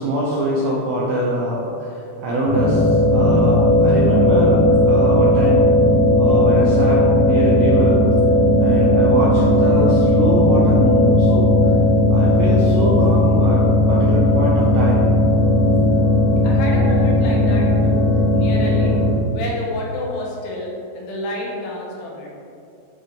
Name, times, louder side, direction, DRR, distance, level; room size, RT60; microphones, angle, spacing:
voice 1, 0.0-5.7 6.2-8.0 8.6-11.7 12.1-15.1, right 1 dB, 80° right, -5 dB, 2.1 m, -23 dB
sound 1, 2.4-19.1, left 1 dB, 60° left, 1.5 m, -15 dB
voice 2, 16.4-18.1 18.3-18.9 19.3-22.3, left 2 dB, 80° left, -3 dB, 3.0 m, -29 dB
10.5 x 3.5 x 3.6 m, 2.5 s
omnidirectional pair, 5.0 m